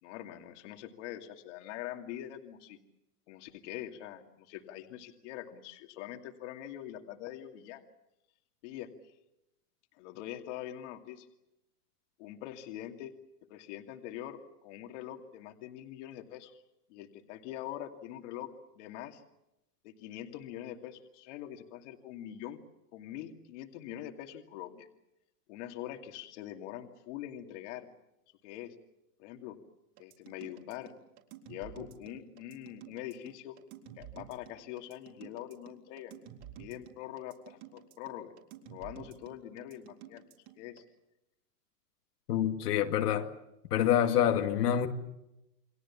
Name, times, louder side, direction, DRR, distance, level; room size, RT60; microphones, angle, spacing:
voice 1, 0.0-2.8 3.3-7.8 8.6-8.9 10.0-11.3 12.2-13.1 13.5-16.6 16.9-19.2 19.8-22.6 22.9-24.9 25.5-27.9 28.4-28.7 29.2-29.6 30.0-30.9 31.5-33.6 34.0-36.1 36.6-38.3 38.7-40.2 40.6-40.8, left 12 dB, 50° left, 2.5 m, -44 dB
sound 1, 30.0-40.8, right 10 dB, 45° right, 3.9 m, -51 dB
voice 2, 42.3-43.3 43.7-44.9, left 10 dB, 75° left, 2.4 m, -26 dB
29.0 x 23.0 x 7.3 m
supercardioid pair, 155°, 47 cm